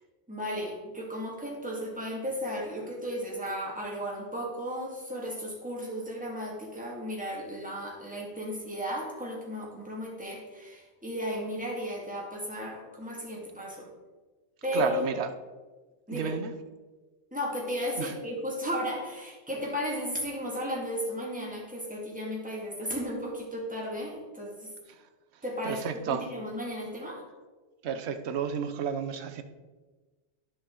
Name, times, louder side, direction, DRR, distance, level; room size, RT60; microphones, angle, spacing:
voice 1, 0.3-13.9 14.6-15.1 16.1-16.3 17.3-24.7 25.4-27.2, equal, 5° right, -3 dB, 2.0 m, -34 dB
voice 2, 14.7-15.3 16.1-16.5 18.0-18.1 25.6-26.2 27.8-29.4, right 7 dB, 70° right, 9 dB, 1.0 m, -31 dB
10.0 x 6.3 x 3.8 m, 1.3 s
omnidirectional pair, 1.2 m